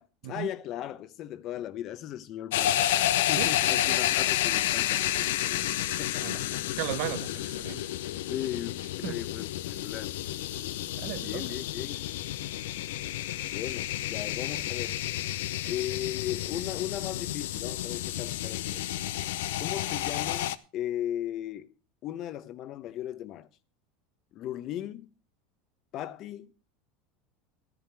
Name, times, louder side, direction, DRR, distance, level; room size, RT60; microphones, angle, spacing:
voice 1, 0.0-2.9 3.3-5.7 6.0-6.6 8.1-8.8 9.1-10.1 11.2-12.1 13.5-15.0 15.7-18.9 19.6-21.7 22.0-23.5 24.3-25.1 25.9-26.5, left 12 dB, 50° left, 0.9 m, -37 dB
sound 1, 2.5-20.6, left 13 dB, 80° left, 0.6 m, -30 dB
voice 2, 3.4-4.0 6.2-6.4 6.8-7.9 9.0-9.2 11.0-11.6, right 16 dB, 70° right, 0.7 m, -36 dB
13.5 x 10.5 x 4.5 m
supercardioid pair, 110°, 0 cm